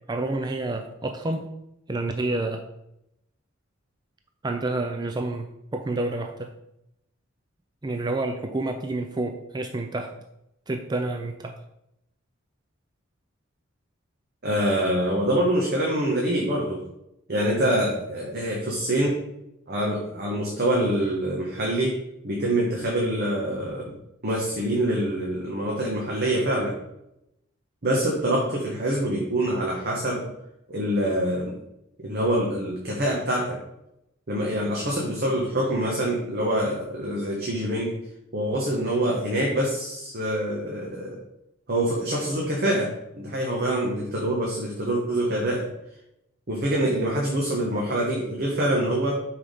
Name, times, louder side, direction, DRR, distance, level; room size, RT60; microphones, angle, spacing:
voice 1, 0.0-1.5 1.9-2.7 4.4-6.5 7.8-10.1 10.7-11.6, right 2 dB, 20° right, 5 dB, 0.4 m, -29 dB
voice 2, 14.4-16.8 17.3-19.2 19.7-22.0 22.2-23.9 24.2-26.8 27.8-30.3 30.7-31.5 32.0-33.6 34.3-38.0 38.3-41.2 41.7-45.7 46.5-49.2, right 1 dB, 50° right, -3 dB, 1.2 m, -25 dB
5.8 x 4.7 x 5.2 m, 0.84 s
head